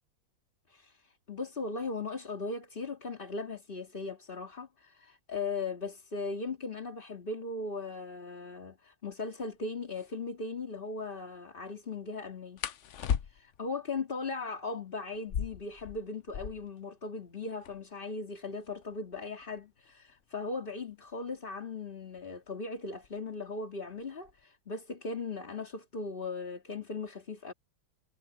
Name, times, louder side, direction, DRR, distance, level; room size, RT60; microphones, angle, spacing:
voice 1, 0.7-12.6 13.2-27.5, left 3 dB, 25° left, 2.3 m, -38 dB
sound 1, 9.4-9.5 9.9-10.1 12.6-13.7 15.1-16.8 17.1-17.2 17.4-18.0 18.6-21.2 22.2-22.5 22.9-23.3 23.7-24.4, left 8 dB, 75° left, 0.6 m, -37 dB
omnidirectional pair, 2.2 m